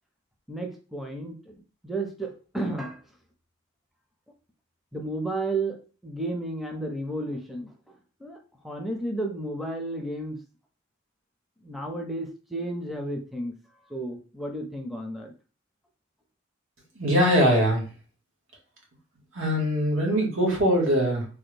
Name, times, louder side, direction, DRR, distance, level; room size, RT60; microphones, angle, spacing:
voice 1, 0.5-3.0 4.9-5.8 6.0-7.7 8.2-8.4 8.6-10.4 11.6-13.5 13.9-15.3, right 2 dB, ahead, 2 dB, 0.4 m, -32 dB
voice 2, 16.9-17.9 19.3-21.3, equal, 90° right, -1 dB, 1.3 m, -22 dB
3.3 x 2.2 x 3.2 m, 0.36 s
head